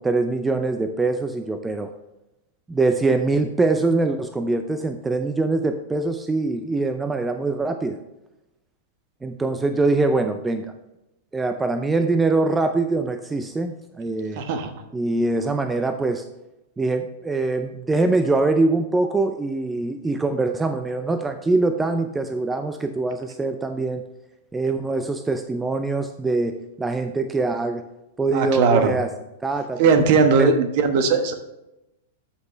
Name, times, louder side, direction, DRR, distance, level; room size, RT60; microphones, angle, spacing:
voice 1, 0.0-1.9 2.7-8.0 9.2-10.7 11.3-14.4 14.9-16.2 16.8-24.0 24.5-27.8 28.2-29.1 29.4-29.9 30.4-30.5, right 3 dB, 10° right, 8 dB, 0.6 m, -23 dB
voice 2, 14.4-14.7 28.3-28.9 29.8-31.3, right 5 dB, 50° right, 7 dB, 1.3 m, -18 dB
13.0 x 5.9 x 3.2 m, 0.92 s
figure-of-eight pair, 100°, 0 cm